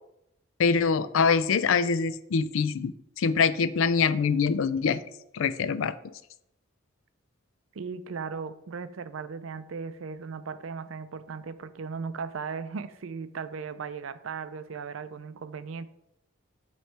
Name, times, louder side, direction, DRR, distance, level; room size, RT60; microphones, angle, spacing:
voice 1, 0.6-2.9 3.2-5.0 5.3-6.0, left 5 dB, 75° left, 15 dB, 0.4 m, -24 dB
voice 2, 7.7-15.9, right 5 dB, 80° right, 12 dB, 0.5 m, -37 dB
9.2 x 3.1 x 4.6 m, 0.82 s
head